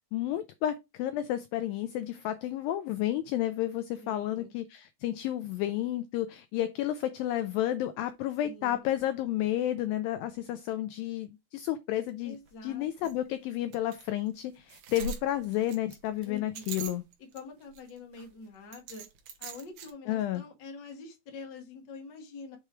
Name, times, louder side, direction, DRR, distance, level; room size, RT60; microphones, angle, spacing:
voice 1, 0.1-12.4 12.6-17.0 20.1-20.4, left 13 dB, 85° left, 2.1 m, -31 dB
voice 2, 4.0-4.5 8.4-8.8 12.2-13.1 16.2-16.8 17.3-19.0 19.4-22.6, left 4 dB, 45° left, 1.4 m, -46 dB
sound 1, 12.1-12.2 12.5-12.6 13.0-13.1 13.7-14.0 14.4-14.5 14.7-17.4 17.7-18.3 18.7-19.9, right 5 dB, 70° right, 2.1 m, -41 dB
6.7 x 3.1 x 4.7 m
omnidirectional pair, 4.5 m